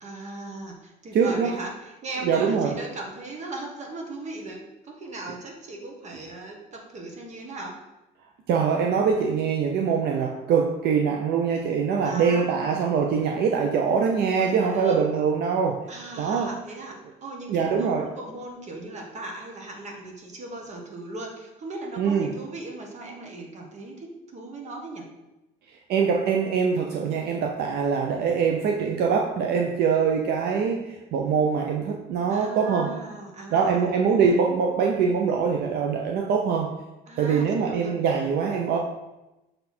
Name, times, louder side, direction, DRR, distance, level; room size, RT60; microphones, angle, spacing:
voice 1, 0.0-7.8 12.0-12.9 14.4-15.1 15.9-25.1 32.3-33.9 34.2-34.3 37.1-38.0, right 2 dB, 45° right, 1 dB, 1.6 m, -38 dB
voice 2, 1.1-1.5 2.2-2.8 8.5-15.8 16.2-16.5 17.5-18.1 22.0-22.3 25.9-32.9 33.5-36.7 37.2-38.8, right 6 dB, 70° right, 1 dB, 0.7 m, -23 dB
6.5 x 4.2 x 4.3 m, 0.99 s
cardioid pair, 110°, 17 cm